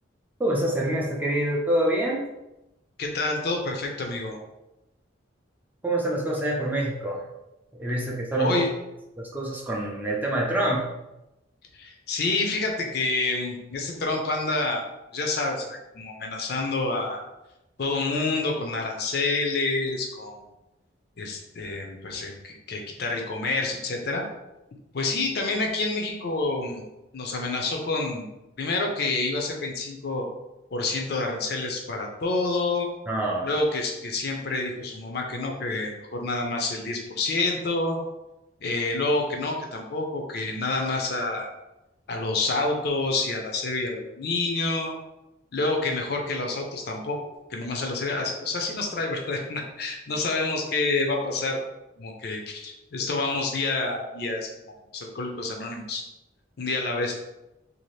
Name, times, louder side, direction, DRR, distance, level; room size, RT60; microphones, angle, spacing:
voice 1, 0.4-2.2 5.8-7.2 7.8-8.6 9.2-10.9 33.1-33.5, right 1 dB, 10° right, -3 dB, 0.4 m, -26 dB
voice 2, 3.0-4.4 8.4-8.7 11.7-14.8 15.1-17.2 17.8-20.4 21.2-24.2 24.9-26.8 27.1-28.3 28.6-30.3 30.7-32.9 33.4-38.0 38.6-41.5 42.1-44.9 45.5-47.2 47.5-51.6 52.0-54.5 54.9-56.0 56.6-57.1, left 3 dB, 55° left, 2 dB, 0.5 m, -28 dB
2.7 x 2.4 x 3.1 m, 0.95 s
head